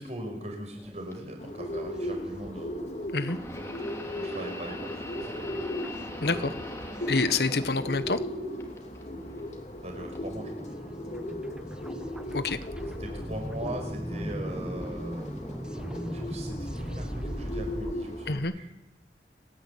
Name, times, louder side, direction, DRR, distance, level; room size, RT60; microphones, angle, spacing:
voice 1, 0.0-2.8 4.1-5.6 6.0-6.5 9.8-10.7 13.0-15.3 16.1-18.7, right 1 dB, 40° right, 3 dB, 5.4 m, -40 dB
sound 1, 0.8-1.1 1.6-2.8 3.0-3.1 3.3-8.2 8.6-8.7 9.2-17.9, equal, 5° right, 0.8 m, -40 dB
sound 2, 1.1-1.2 3.2-8.3 8.6-9.4 10.1-10.3 11.3-11.4, left 1 dB, 15° left, 2.8 m, -41 dB
Bird, 1.4-18.4, equal, 40° left, 2.7 m, -37 dB
voice 2, 6.2-6.5 7.1-8.2 12.3-12.6 18.3-18.5, left 3 dB, 65° left, 11 dB, 1.1 m, -27 dB
29.5 x 10.5 x 8.5 m, 0.82 s
head